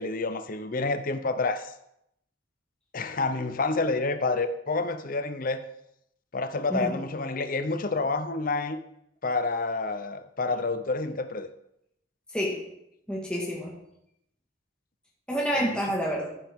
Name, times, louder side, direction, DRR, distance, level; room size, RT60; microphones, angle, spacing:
voice 1, 0.0-1.7 2.9-5.6 6.3-8.8 9.2-11.5 15.5-15.8, left 3 dB, 45° left, 10 dB, 0.7 m, -28 dB
voice 2, 13.1-13.7 15.3-16.3, equal, 5° left, -4 dB, 1.6 m, -28 dB
12.5 x 7.5 x 3.6 m, 0.78 s
head